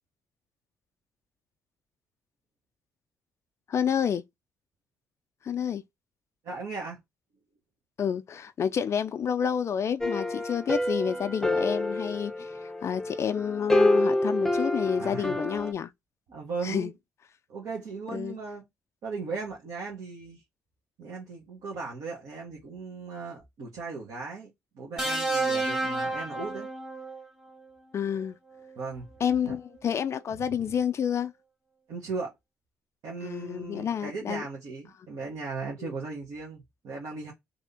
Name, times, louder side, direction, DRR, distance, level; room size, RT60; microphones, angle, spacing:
voice 1, 3.7-4.2 5.4-5.8 8.0-15.9 16.6-16.9 18.1-18.3 27.9-28.4 29.2-31.3 33.2-34.4 35.8-35.9, left 8 dB, 50° left, 0.4 m, -29 dB
voice 2, 6.4-7.0 15.0-15.4 16.3-16.9 17.5-18.6 19.0-20.4 21.0-26.7 28.7-29.1 29.4-29.5 30.3-30.6 31.9-32.3 33.0-37.3, right 4 dB, 70° right, 1.4 m, -37 dB
sound 1, 10.0-15.7, left 1 dB, 5° left, 0.6 m, -27 dB
sound 2, 25.0-27.2 28.6-28.8, right 2 dB, 10° right, 1.1 m, -30 dB
3.4 x 2.8 x 4.2 m
supercardioid pair, 60°, 6 cm